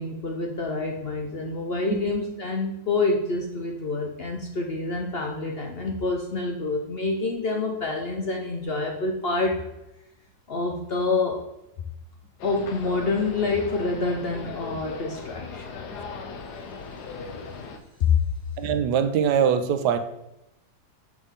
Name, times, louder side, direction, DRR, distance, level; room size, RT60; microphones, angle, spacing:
voice 1, 0.0-9.6 10.5-11.4 12.4-15.8 18.0-18.1, left 3 dB, 55° left, 1 dB, 0.7 m, -27 dB
sound 1, 12.4-17.8, left 4 dB, 85° left, 1.3 m, -38 dB
voice 2, 18.6-20.0, right 8 dB, 90° right, 9 dB, 1.2 m, -22 dB
6.2 x 5.4 x 3.6 m, 0.88 s
omnidirectional pair, 1.7 m